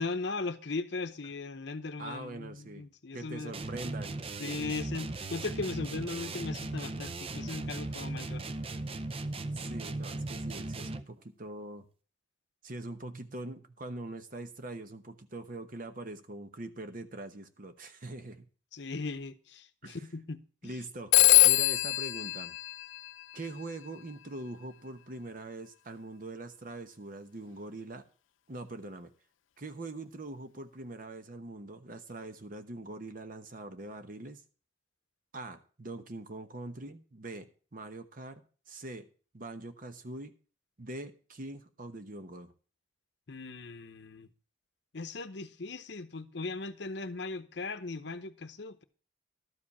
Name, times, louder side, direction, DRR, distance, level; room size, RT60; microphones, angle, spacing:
voice 1, 0.0-3.5 4.4-8.4 18.7-20.8 43.3-44.3 44.9-48.8, left 3 dB, 60° left, 0.8 m, -38 dB
voice 2, 2.0-2.9 3.1-4.2 9.3-11.8 12.6-18.5 19.8-20.0 20.6-22.6 23.3-28.0 28.5-29.1 29.6-34.4 35.3-39.1 39.3-40.3 40.8-42.5, right 2 dB, 45° right, 1.0 m, -43 dB
sound 1, 3.5-11.2, right 2 dB, 30° right, 0.5 m, -37 dB
Telephone, 21.1-23.6, left 19 dB, 90° left, 0.5 m, -24 dB
12.5 x 5.1 x 7.1 m
head